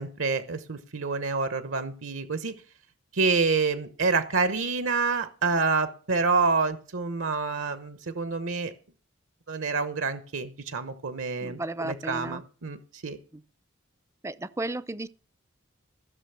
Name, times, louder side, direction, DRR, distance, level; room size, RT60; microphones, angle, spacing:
voice 1, 0.0-2.5 3.1-8.7 9.5-13.2, right 4 dB, 75° right, 1.0 m, -27 dB
voice 2, 11.4-12.4 13.3-13.4 14.2-15.1, right 2 dB, 15° right, 0.5 m, -34 dB
15.0 x 6.6 x 6.9 m
head